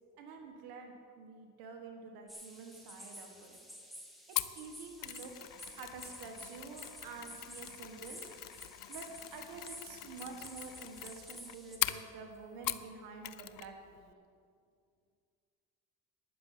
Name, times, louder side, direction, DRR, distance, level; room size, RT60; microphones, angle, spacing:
voice 1, 0.2-3.6 4.4-8.3 8.9-14.1, right 4 dB, 90° right, 3 dB, 1.6 m, -48 dB
sound 1, 2.3-11.8, equal, ahead, 2.5 m, -51 dB
Mechanisms, 4.4-12.9 13.2-13.7 14.0-14.1, left 14 dB, 65° left, 0.6 m, -41 dB
12.0 x 7.0 x 9.4 m, 2.2 s
supercardioid pair, 70°, 36 cm